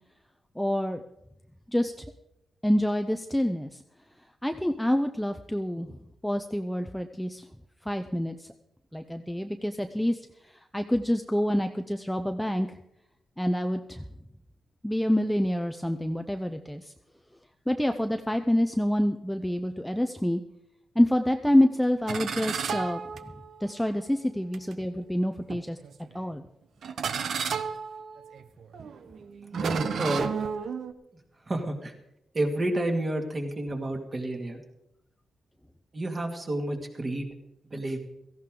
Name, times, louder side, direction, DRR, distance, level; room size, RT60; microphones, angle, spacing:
voice 1, 0.6-1.0 1.7-1.9 2.6-3.8 4.4-6.0 6.2-7.5 7.9-8.5 8.9-12.8 13.4-14.0 14.8-16.9 17.7-20.4 21.0-23.0 23.6-25.8 26.1-26.4, left 1 dB, 5° left, 6 dB, 0.5 m, -27 dB
sound 1, 22.1-23.7 24.5-24.7 25.5-26.0 26.8-30.9, right 6 dB, 60° right, 0.8 m, -33 dB
voice 2, 29.5-30.3 31.4-31.9 32.3-34.6 35.9-37.3 37.6-38.0, right 1 dB, 25° right, 3 dB, 2.1 m, -30 dB
17.0 x 15.0 x 3.8 m, 0.85 s
wide cardioid pair, 155°, 0 cm